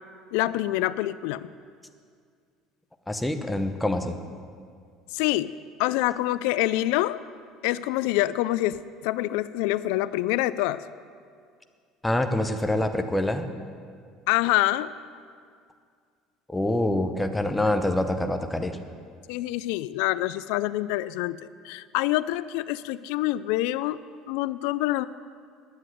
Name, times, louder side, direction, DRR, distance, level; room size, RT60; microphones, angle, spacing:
voice 1, 0.3-1.5 5.1-5.5 5.8-7.2 7.6-10.8 14.3-14.9 19.3-24.0 24.3-25.1, left 16 dB, 80° left, 16 dB, 0.3 m, -26 dB
voice 2, 3.1-4.2 12.0-13.5 16.5-18.8, left 1 dB, 5° left, 7 dB, 0.7 m, -25 dB
9.8 x 8.3 x 9.1 m, 2.2 s
cardioid pair, 160°, 0 cm